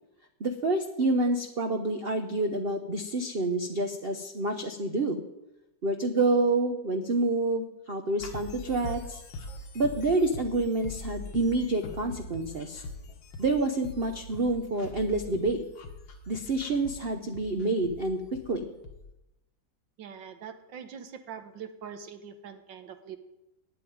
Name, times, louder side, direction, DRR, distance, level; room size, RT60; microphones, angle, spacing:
voice 1, 0.4-5.2 5.8-9.2 9.7-12.8 13.4-15.6 16.3-18.7, right 2 dB, 55° right, 5 dB, 0.6 m, -28 dB
sound 1, 8.2-19.1, left 2 dB, 70° left, 2.0 m, -43 dB
voice 2, 20.0-23.2, right 7 dB, 70° right, 8 dB, 1.6 m, -43 dB
9.2 x 8.3 x 9.3 m, 0.93 s
omnidirectional pair, 2.1 m